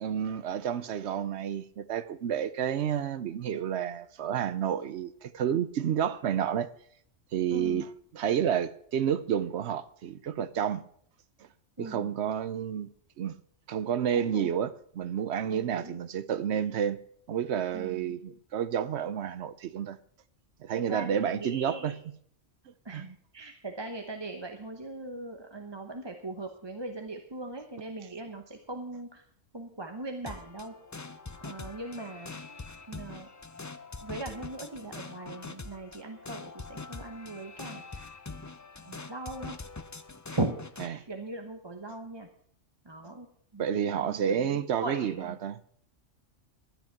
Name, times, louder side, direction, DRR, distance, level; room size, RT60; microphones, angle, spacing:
voice 1, 0.0-6.7 7.3-7.9 8.1-10.8 11.8-12.9 13.2-13.3 13.7-17.0 17.3-20.0 20.6-22.0 22.9-23.0 43.6-45.6, right 9 dB, 65° right, 0.9 m, -30 dB
voice 2, 7.5-7.8 11.8-12.1 14.1-14.5 15.5-16.0 17.7-18.1 20.7-22.0 22.8-29.2 29.5-30.7 31.4-32.4 32.9-33.3 34.0-38.1 38.9-39.6 40.3-40.6 40.8-42.3 42.8-43.3 43.5-45.4, right 2 dB, 25° right, 0.9 m, -39 dB
sound 1, 30.3-40.9, left 3 dB, 25° left, 0.4 m, -43 dB
12.0 x 10.5 x 5.9 m
omnidirectional pair, 1.3 m